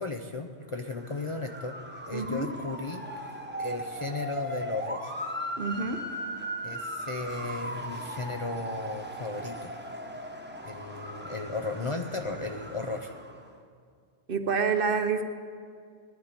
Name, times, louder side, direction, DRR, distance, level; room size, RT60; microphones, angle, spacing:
voice 1, 0.0-1.8 2.0-3.0 3.3-5.1 6.6-9.7 10.6-13.1, left 3 dB, 35° left, 4 dB, 0.6 m, -35 dB
Motor vehicle (road) / Siren, 0.8-13.5, right 1 dB, 10° right, 1.1 m, -38 dB
voice 2, 2.1-2.5 5.6-6.1 14.3-15.2, right 5 dB, 55° right, 7 dB, 1.0 m, -28 dB
18.5 x 11.5 x 5.1 m, 2.2 s
omnidirectional pair, 1.1 m